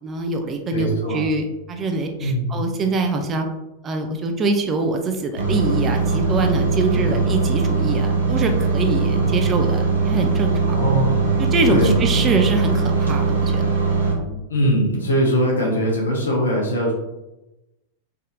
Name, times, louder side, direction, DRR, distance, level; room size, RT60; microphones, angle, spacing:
voice 1, 0.0-3.5 3.8-10.6 11.5-13.6 14.1-14.4, right 3 dB, 25° right, 4 dB, 0.3 m, -24 dB
voice 2, 0.7-1.4 2.2-2.6 6.9-7.2 9.1-9.5 10.7-11.3 11.7-12.3 14.5-16.9, equal, 70° left, -3 dB, 0.7 m, -22 dB
sound 1, 5.4-14.1, right 4 dB, 70° right, 0.7 m, -20 dB
3.4 x 2.6 x 2.4 m, 0.99 s
figure-of-eight pair, 90°, 0 cm